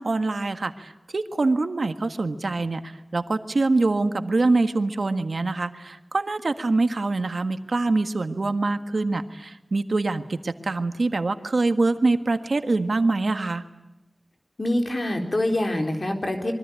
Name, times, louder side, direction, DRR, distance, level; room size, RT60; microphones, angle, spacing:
voice 1, 0.0-13.6, right 3 dB, 90° right, 9 dB, 1.6 m, -24 dB
voice 2, 14.6-16.5, left 1 dB, 55° left, 4 dB, 4.2 m, -25 dB
26.0 x 23.5 x 9.2 m, 0.98 s
wide cardioid pair, 65°, 0 cm